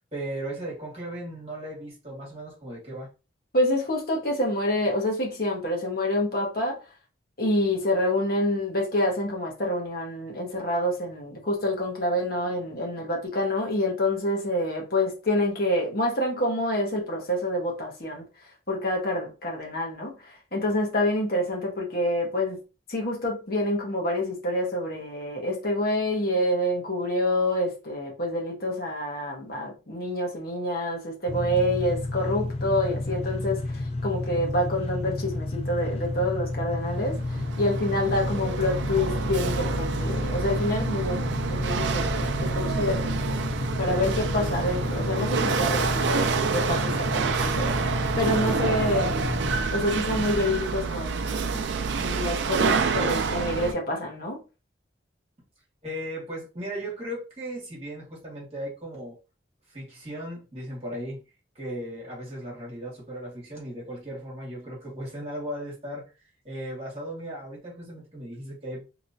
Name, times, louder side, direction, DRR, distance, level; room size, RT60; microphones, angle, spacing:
voice 1, 0.0-3.1 55.8-59.2 59.7-61.2 61.5-66.0 66.4-68.8, right 1 dB, 30° right, 1.6 m, -36 dB
voice 2, 3.5-6.8 7.4-18.2 18.7-22.6 22.9-43.5 43.8-47.7 48.2-49.3 49.7-51.6 52.0-54.4, left 1 dB, 50° left, 1.1 m, -27 dB
sound 1, 31.3-49.6, left 2 dB, 30° left, 0.3 m, -31 dB
Chatter / Hiss / Rattle, 36.8-53.7, right 5 dB, 65° right, 0.4 m, -28 dB
3.0 x 2.9 x 2.7 m
head